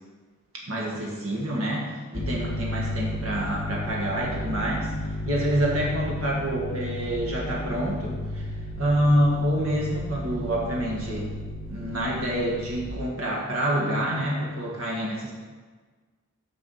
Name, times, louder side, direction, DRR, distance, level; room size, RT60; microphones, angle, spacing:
voice 1, 0.7-4.9 5.3-8.5 8.8-11.3 11.7-15.3, equal, 80° right, -3 dB, 1.8 m, -27 dB
sound 1, 2.1-12.9, left 1 dB, 40° left, 0.7 m, -33 dB
6.7 x 5.1 x 7.1 m, 1.4 s
head